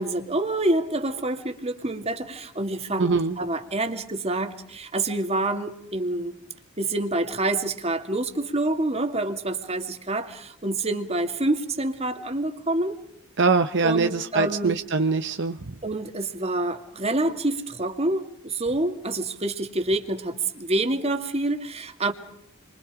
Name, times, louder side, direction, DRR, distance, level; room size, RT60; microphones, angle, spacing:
voice 1, 0.0-6.3 6.8-12.9 13.8-14.8 15.8-22.1, right 2 dB, 30° right, 6 dB, 2.4 m, -27 dB
voice 2, 3.0-3.4 13.4-15.6, right 4 dB, 60° right, 7 dB, 1.0 m, -23 dB
29.5 x 24.5 x 5.0 m, 0.70 s
head